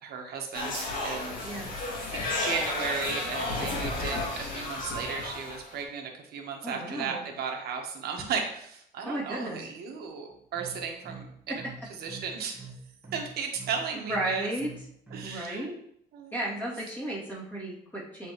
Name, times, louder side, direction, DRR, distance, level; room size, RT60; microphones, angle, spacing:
voice 1, 0.0-1.4 2.1-11.3 12.0-12.7 13.1-14.5 15.1-15.7 16.1-16.4, right 6 dB, 70° right, 2 dB, 1.3 m, -35 dB
sound 1, 0.5-5.8, left 2 dB, 55° left, 2.2 m, -32 dB
voice 2, 1.4-1.7 6.6-7.3 9.0-9.7 13.9-14.7 15.2-15.8 16.3-18.3, right 1 dB, 10° left, -7 dB, 2.6 m, -34 dB
sound 2, 10.3-15.4, right 4 dB, 5° right, 1.2 m, -45 dB
8.3 x 4.0 x 3.1 m, 0.70 s
cardioid pair, 110°, 17 cm